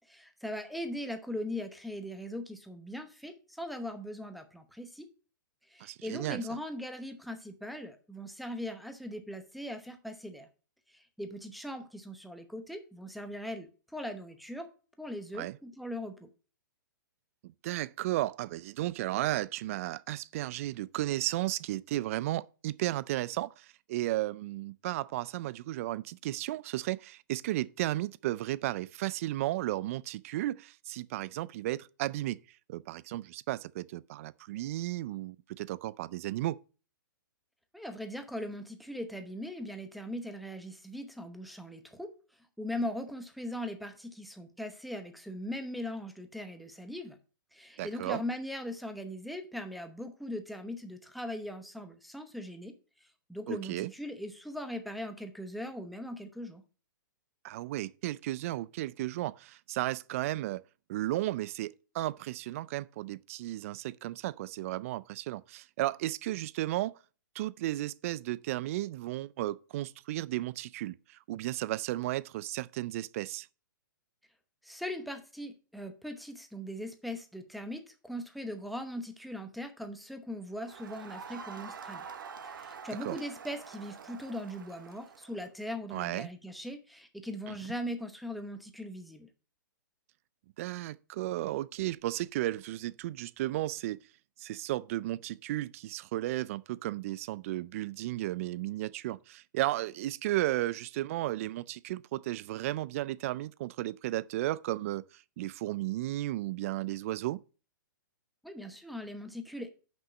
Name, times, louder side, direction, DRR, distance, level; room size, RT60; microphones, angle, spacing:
voice 1, 0.1-5.1 5.7-10.5 10.9-14.7 15.0-16.3 37.7-42.1 42.6-47.2 47.5-52.7 53.0-56.6 74.6-82.0 82.4-89.3 108.4-109.7, left 1 dB, ahead, 0.8 m, -40 dB
voice 2, 5.8-6.4 15.3-15.6 17.4-32.4 32.7-36.6 47.8-48.2 53.5-53.9 57.4-60.6 60.9-67.0 67.3-73.5 83.0-83.2 85.9-86.3 87.5-87.6 90.6-94.0 94.4-107.4, right 16 dB, 40° right, 0.3 m, -34 dB
Crowd, 80.6-85.4, right 6 dB, 80° right, 0.9 m, -46 dB
5.9 x 5.4 x 6.0 m
hypercardioid pair, 145°, 11 cm